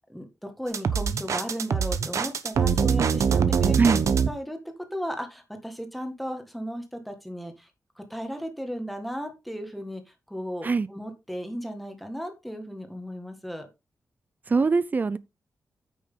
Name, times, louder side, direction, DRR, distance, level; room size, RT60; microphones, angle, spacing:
voice 1, 0.1-3.9 4.3-4.6 4.9-7.7 8.0-10.0 10.3-13.7, equal, ahead, 1.8 m, -35 dB
sound 1, 0.7-4.3, right 6 dB, 65° right, 0.9 m, -23 dB
voice 2, 14.5-15.2, right 4 dB, 30° right, 0.5 m, -22 dB
9.3 x 6.3 x 3.9 m
wide cardioid pair, 140°, 6 cm